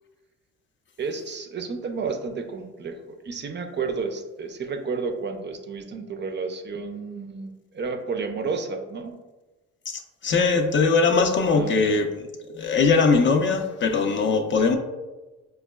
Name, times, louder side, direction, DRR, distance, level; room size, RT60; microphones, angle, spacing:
voice 1, 1.0-9.1 11.5-11.7, right 4 dB, 35° right, 5 dB, 0.4 m, -31 dB
voice 2, 9.9-12.1 12.5-14.8, left 4 dB, 40° left, 5 dB, 0.4 m, -21 dB
5.2 x 2.2 x 2.2 m, 1.1 s
cardioid pair, 90°, 30 cm